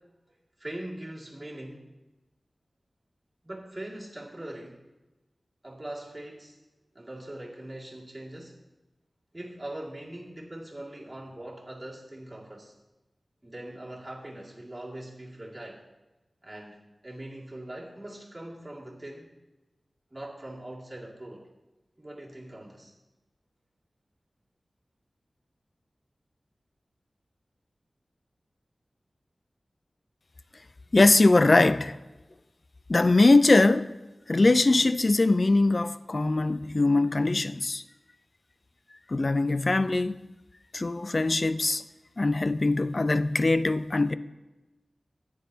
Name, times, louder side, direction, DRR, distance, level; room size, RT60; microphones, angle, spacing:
voice 1, 0.6-1.9 3.4-4.8 5.6-6.6 6.9-8.6 9.3-12.7 13.4-15.8 16.4-19.3 20.1-21.5 22.0-22.9, right 1 dB, 25° right, 2.2 m, -41 dB
voice 2, 30.9-32.0 32.9-33.9 34.3-37.8 39.1-40.3 40.7-41.8 42.2-44.2, left 2 dB, 45° left, 0.4 m, -22 dB
14.0 x 9.4 x 2.8 m
wide cardioid pair, 65°, 0 cm